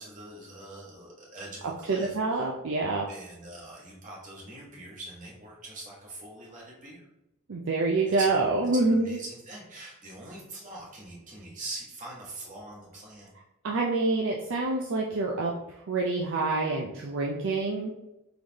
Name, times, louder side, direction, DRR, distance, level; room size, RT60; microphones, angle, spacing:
voice 1, 0.0-2.5 3.1-7.1 8.1-8.4 8.7-13.3, right 2 dB, 35° right, -4 dB, 1.3 m, -43 dB
voice 2, 1.9-3.1 7.5-9.1 13.6-17.9, right 3 dB, 55° right, -1 dB, 0.5 m, -27 dB
4.0 x 3.2 x 3.9 m, 0.93 s
head